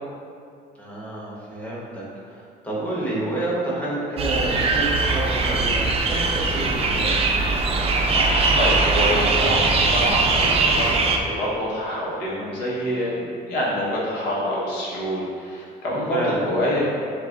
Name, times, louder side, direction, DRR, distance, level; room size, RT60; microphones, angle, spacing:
voice 1, 0.8-2.0 2.6-7.2 16.1-16.4, right 1 dB, 10° left, -8 dB, 1.3 m, -28 dB
sound 1, 4.2-11.2, right 3 dB, 35° right, 0.5 m, -21 dB
voice 2, 8.1-16.9, equal, 75° left, -7 dB, 1.4 m, -26 dB
7.6 x 2.6 x 2.6 m, 2.4 s
cardioid pair, 110°, 17 cm